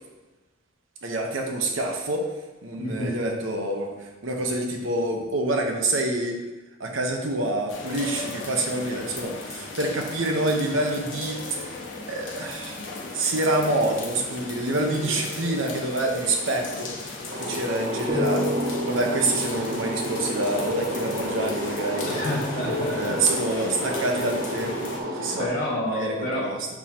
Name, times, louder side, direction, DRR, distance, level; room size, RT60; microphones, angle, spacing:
voice 1, 1.0-2.3 2.6-6.4 6.8-11.6 12.1-12.9 13.1-16.9 17.4-22.2 22.9-25.5 25.8-26.7, right 2 dB, 85° right, 2 dB, 0.9 m, -27 dB
voice 2, 2.8-3.1 22.0-23.2 25.4-26.5, left 1 dB, 35° left, -6 dB, 1.9 m, -28 dB
sound 1, 7.7-25.0, left 3 dB, 80° left, 1.1 m, -36 dB
sound 2, 17.3-25.5, equal, 45° right, 1.0 m, -32 dB
sound 3, 18.1-21.5, equal, 20° right, 1.8 m, -31 dB
7.0 x 5.7 x 2.9 m, 1.1 s
head